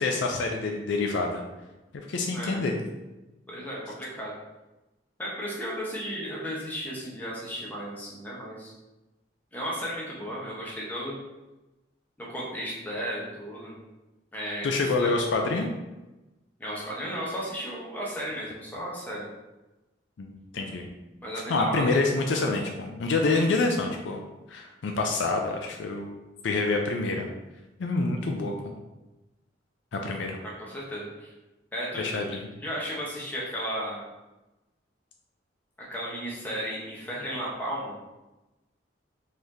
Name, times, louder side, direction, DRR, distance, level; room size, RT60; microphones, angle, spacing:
voice 1, 0.0-1.4 2.1-2.8 14.6-15.7 20.2-20.9 21.5-24.2 24.5-26.1 26.4-27.3 27.8-28.7 29.9-30.4 32.0-32.5, left 3 dB, 80° left, 2 dB, 0.4 m, -27 dB
voice 2, 3.5-4.3 5.2-8.7 9.5-11.2 12.2-13.8 14.3-15.2 16.6-19.3 21.2-21.9 30.4-31.3 31.7-32.2 32.6-34.0 35.8-37.9, equal, 10° left, -5 dB, 0.8 m, -34 dB
3.9 x 3.1 x 2.7 m, 1.0 s
head